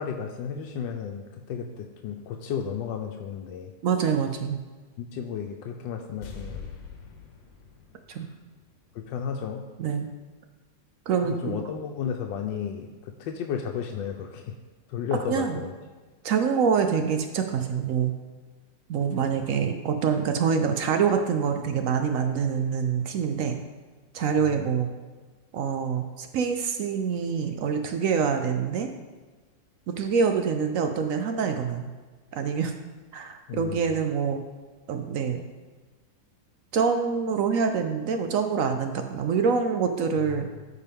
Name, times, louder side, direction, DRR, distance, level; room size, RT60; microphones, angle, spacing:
voice 1, 0.0-3.7 5.0-6.7 8.9-9.6 11.2-14.5 14.9-15.7 24.4-24.7 33.5-33.8, left 7 dB, 90° left, 3 dB, 1.3 m, -33 dB
voice 2, 3.8-4.6 8.1-8.3 9.8-10.1 11.1-11.6 15.3-15.6 16.2-18.1 18.9-23.6 24.1-24.9 25.5-28.9 29.9-31.8 32.3-32.7 33.1-34.4 34.9-35.4 36.7-40.5, right 6 dB, 70° right, 6 dB, 0.8 m, -25 dB
sound 1, 6.2-9.4 9.7-9.8, left 5 dB, 75° left, 1.6 m, -44 dB
13.5 x 4.6 x 3.5 m, 1.3 s
omnidirectional pair, 2.0 m